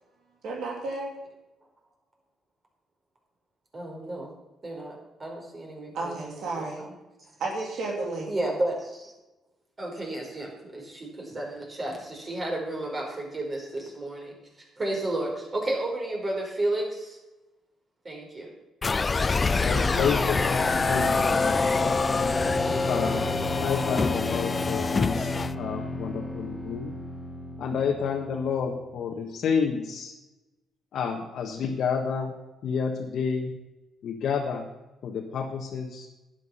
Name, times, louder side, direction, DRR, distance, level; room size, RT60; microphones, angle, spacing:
voice 1, 0.4-1.2 5.9-6.8 7.4-8.3, right 3 dB, 75° right, 3.0 m, -32 dB
voice 2, 3.7-4.3 4.6-6.4 6.8-6.9 8.3-9.1 9.8-14.3 14.8-17.2 18.0-18.5, right 1 dB, 30° right, 4.8 m, -32 dB
sound 1, 18.8-25.5, left 4 dB, 30° left, 0.4 m, -25 dB
voice 3, 19.3-22.0 22.9-23.3 23.6-26.9 27.6-30.1 30.9-32.3 32.6-33.5 34.0-34.6 35.0-36.1, left 6 dB, 70° left, 1.4 m, -30 dB
sound 2, 19.5-29.1, left 1 dB, ahead, 2.8 m, -34 dB
11.5 x 9.4 x 5.7 m
cardioid pair, 90°, 0 cm